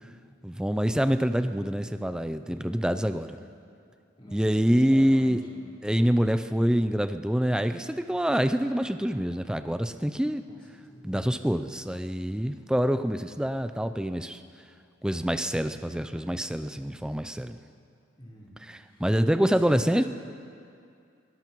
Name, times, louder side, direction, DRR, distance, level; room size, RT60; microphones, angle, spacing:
voice 1, 0.4-3.4 4.3-5.4 5.8-10.4 11.0-14.4 15.0-17.6 18.6-20.0, equal, 5° right, 9 dB, 0.4 m, -26 dB
voice 2, 2.5-3.1 4.2-5.7 10.5-10.6 10.9-11.2 18.2-19.0 19.5-20.1, equal, 30° left, -8 dB, 4.0 m, -45 dB
23.5 x 17.5 x 3.1 m, 2.4 s
head